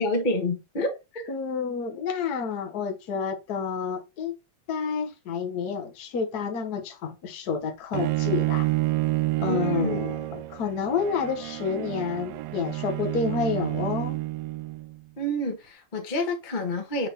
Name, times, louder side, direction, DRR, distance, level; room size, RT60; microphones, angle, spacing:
voice 1, 0.0-1.3 9.5-10.0 15.2-17.1, left 1 dB, 25° left, 1.0 m, -28 dB
voice 2, 1.3-4.3 4.7-8.7 9.4-14.2, left 6 dB, 60° left, 1.0 m, -29 dB
Bowed string instrument, 7.9-15.0, right 17 dB, 80° right, 1.8 m, -29 dB
7.1 x 4.0 x 4.1 m
omnidirectional pair, 3.3 m